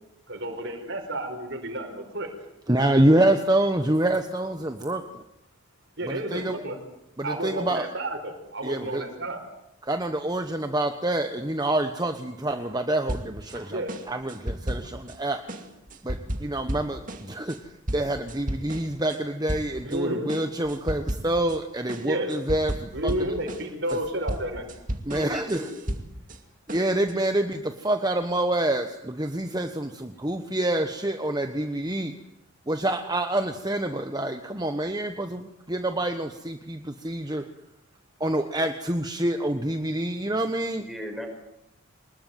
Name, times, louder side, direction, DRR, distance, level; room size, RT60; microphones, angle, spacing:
voice 1, 0.3-2.3 6.0-6.8 7.2-9.4 13.5-13.9 19.8-20.3 22.0-22.4 22.9-24.6, right 1 dB, 55° right, 3 dB, 4.9 m, -31 dB
voice 2, 2.7-5.0 6.1-6.6 7.2-7.9 8.6-9.0 9.8-15.4 16.0-17.0 17.3-17.6 17.9-22.8 23.0-23.1 25.1-25.6 26.7-32.1 32.7-37.4 38.2-40.8, right 1 dB, 20° right, 7 dB, 1.1 m, -26 dB
sound 1, 13.1-13.6 13.9-15.2 15.5-19.2 19.5-20.0 20.3-21.6 21.9-26.4 26.7-27.1, equal, 35° right, 2.4 m, -34 dB
voice 3, 25.1-25.8 40.8-41.3, equal, ahead, 2 dB, 5.5 m, -36 dB
25.0 x 21.0 x 9.4 m, 0.83 s
head